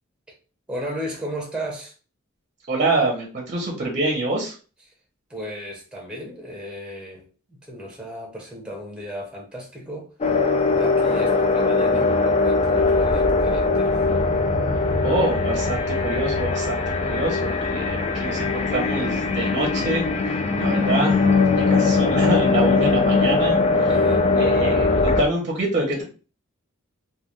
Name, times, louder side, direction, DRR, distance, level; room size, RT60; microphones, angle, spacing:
voice 1, 0.7-1.9 5.3-10.1 10.8-14.0 23.8-24.3, equal, 5° right, 0.8 m, -35 dB
voice 2, 2.7-4.5 15.0-23.9 24.4-26.0, right 2 dB, 35° right, 0.6 m, -26 dB
sound 1, 10.2-25.2, left 3 dB, 30° left, 0.3 m, -20 dB
2.2 x 2.2 x 3.0 m
head